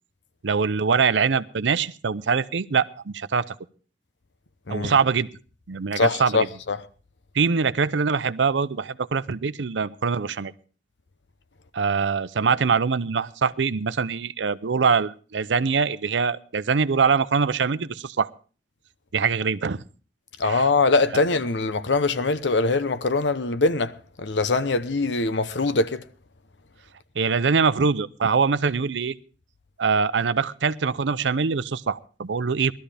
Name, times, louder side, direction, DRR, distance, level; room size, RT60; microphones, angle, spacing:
voice 1, 0.4-3.6 4.7-5.3 5.7-6.4 7.3-10.5 11.7-18.3 19.1-19.8 20.4-20.6 27.2-29.1 29.8-32.7, right 5 dB, 85° right, 0.6 m, -23 dB
voice 2, 6.0-6.8 20.4-26.0, left 3 dB, 80° left, 0.9 m, -23 dB
19.0 x 13.0 x 3.4 m
head